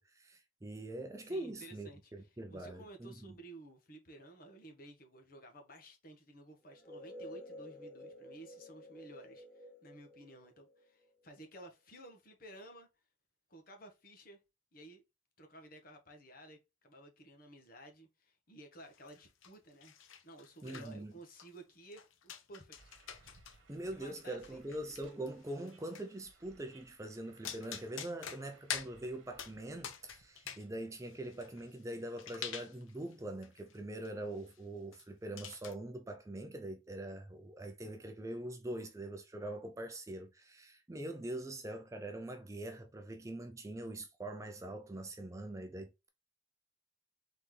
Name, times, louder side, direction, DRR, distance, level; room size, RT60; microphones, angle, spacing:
voice 1, 0.0-3.3 20.6-21.1 23.7-46.1, right 1 dB, 15° right, 0.5 m, -43 dB
voice 2, 1.2-12.9 13.5-14.4 14.7-15.0 15.4-19.9 20.2-22.8 23.2-23.3 23.9-24.6, right 1 dB, 45° left, 1.3 m, -54 dB
sound 1, 6.7-11.3, left 1 dB, 5° left, 0.8 m, -51 dB
sound 2, 18.9-19.5 19.8-20.9 21.2-21.6 21.9-23.6 23.9-26.1 27.1-27.2 27.4-28.9 29.4-29.5 29.8-30.6 31.0-33.1 33.4-33.8 34.0-34.1 34.4-34.6 34.9-35.0 35.4-35.7, left 8 dB, 80° left, 0.7 m, -46 dB
sound 3, 22.7-31.5, right 3 dB, 70° right, 1.2 m, -65 dB
4.0 x 3.9 x 3.2 m
head